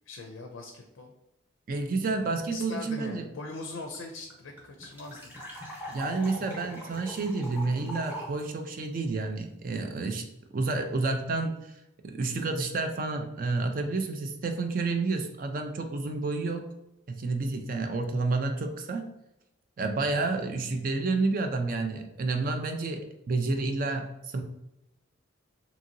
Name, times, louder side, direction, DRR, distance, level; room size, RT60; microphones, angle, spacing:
voice 1, 0.1-1.1 2.5-5.3, left 3 dB, 80° left, 4 dB, 0.4 m, -41 dB
voice 2, 1.7-3.2 5.9-10.2 10.5-11.7 12.0-16.7 17.1-19.1 19.8-24.4, right 3 dB, 45° right, 5 dB, 0.3 m, -30 dB
sound 1, 3.6-3.7 3.9-4.0 4.3-8.4, equal, 10° right, 0.8 m, -41 dB
2.8 x 2.8 x 2.6 m, 0.84 s
head